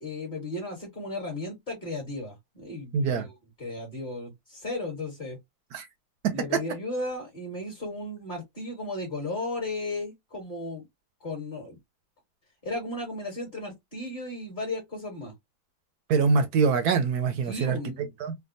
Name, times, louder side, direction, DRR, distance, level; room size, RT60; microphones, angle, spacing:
voice 1, 0.0-3.3 3.6-5.4 6.3-10.9 11.2-11.8 12.6-15.3 17.5-18.1, left 2 dB, 30° left, 1.3 m, -35 dB
voice 2, 2.9-3.3 5.7-5.9 16.1-17.8 18.2-18.3, right 5 dB, 70° right, 1.0 m, -24 dB
3.5 x 2.2 x 2.5 m
omnidirectional pair, 1.9 m